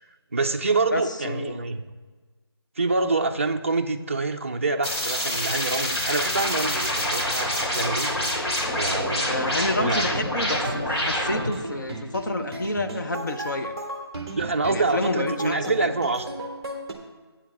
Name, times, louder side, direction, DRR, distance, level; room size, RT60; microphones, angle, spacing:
voice 1, 0.3-1.8 2.8-8.1 8.7-9.4 9.8-10.2 14.4-16.3, right 3 dB, 30° right, 4 dB, 0.4 m, -26 dB
voice 2, 0.9-1.6 9.3-13.7 14.6-15.5 15.8-15.9, left 2 dB, 45° left, 7 dB, 0.6 m, -29 dB
sound 1, 4.8-11.6, left 1 dB, 85° left, 3.2 m, -26 dB
sound 2, 10.4-16.9, right 2 dB, 15° right, 0.8 m, -35 dB
8.4 x 8.1 x 4.2 m, 1.4 s
figure-of-eight pair, 170°, 14 cm